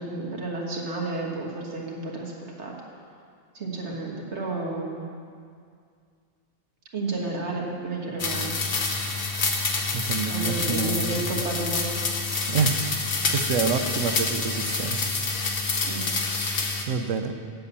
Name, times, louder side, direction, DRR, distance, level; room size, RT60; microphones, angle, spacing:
voice 1, 0.0-2.3 2.6-2.7 3.5-5.0 6.9-8.5 10.3-11.9 15.8-16.0, right 2 dB, 65° right, -2 dB, 1.8 m, -31 dB
sound 1, 8.2-16.8, left 3 dB, 45° left, 1.0 m, -27 dB
voice 2, 9.9-11.1 12.5-15.2 16.0-16.1 16.9-17.3, right 6 dB, 90° right, 8 dB, 1.1 m, -28 dB
8.4 x 7.9 x 6.8 m, 2.2 s
omnidirectional pair, 1.3 m